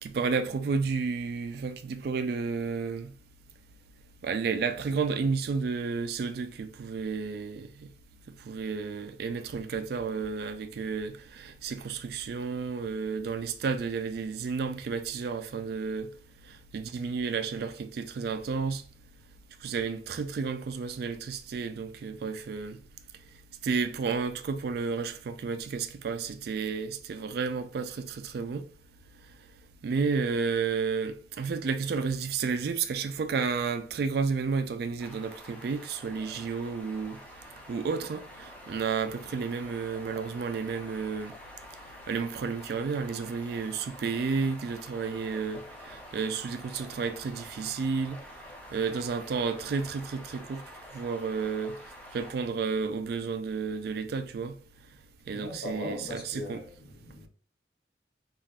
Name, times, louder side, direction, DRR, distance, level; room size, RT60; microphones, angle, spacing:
voice 1, 0.0-3.1 4.2-7.9 8.3-16.1 16.5-18.8 19.6-22.8 23.6-28.6 29.8-37.2 37.7-41.4 42.1-48.2 48.7-50.6 50.9-54.6 55.3-56.6, right 5 dB, 60° right, 0.3 m, -32 dB
sound 1, 35.0-52.3, equal, 10° left, 0.5 m, -48 dB
voice 2, 55.3-57.3, left 1 dB, 55° left, 1.3 m, -39 dB
3.4 x 2.4 x 2.3 m
head